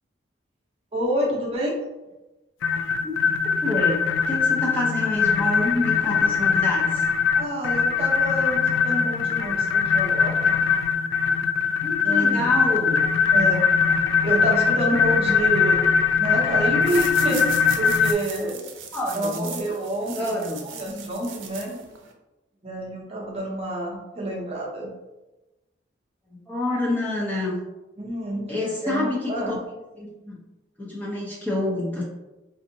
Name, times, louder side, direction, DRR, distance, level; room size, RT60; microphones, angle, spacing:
voice 1, 0.9-1.8 7.3-10.6 12.0-12.5 13.3-13.6 14.2-18.6 19.2-20.3 20.8-21.8 22.6-24.9 28.0-29.6, right 1 dB, 30° right, -3 dB, 0.7 m, -28 dB
sound 1, 2.6-18.1, left 6 dB, 75° left, 0.3 m, -21 dB
voice 2, 3.6-7.0 11.8-13.0 18.4-18.5 18.9-19.5 20.1-20.7 26.3-27.6 28.5-29.6 29.9-30.4 30.8-32.0, left 1 dB, 10° left, -5 dB, 0.6 m, -27 dB
sound 2, 16.8-22.1, right 7 dB, 90° right, 0.6 m, -38 dB
4.8 x 2.6 x 2.7 m, 1.1 s
head